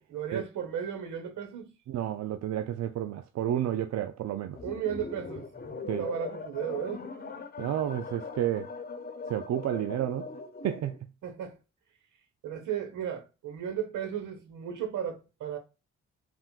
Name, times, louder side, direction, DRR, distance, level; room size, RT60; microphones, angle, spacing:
voice 1, 0.1-1.7 4.6-5.5 5.7-7.0 11.2-11.6 12.4-15.6, right 9 dB, 75° right, 1.0 m, -35 dB
voice 2, 1.9-4.6 5.9-6.1 7.6-8.7 9.3-10.3 10.6-11.0, right 11 dB, 55° right, 0.4 m, -31 dB
sound 1, 4.5-11.0, left 4 dB, 30° left, 1.0 m, -40 dB
3.6 x 2.1 x 2.3 m
supercardioid pair, 50°, 31 cm